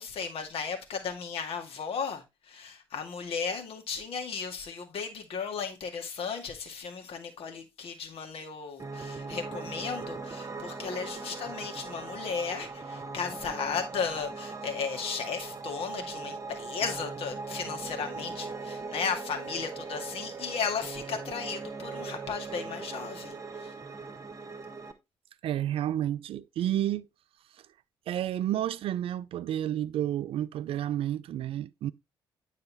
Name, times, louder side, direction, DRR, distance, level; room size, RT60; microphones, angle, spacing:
voice 1, 0.0-23.7, left 6 dB, 55° left, 2.0 m, -35 dB
Piano, 8.8-24.9, right 4 dB, 25° right, 1.3 m, -40 dB
voice 2, 25.4-27.0 28.1-31.9, right 11 dB, 55° right, 0.5 m, -30 dB
9.7 x 4.2 x 4.1 m
figure-of-eight pair, 45°, 12 cm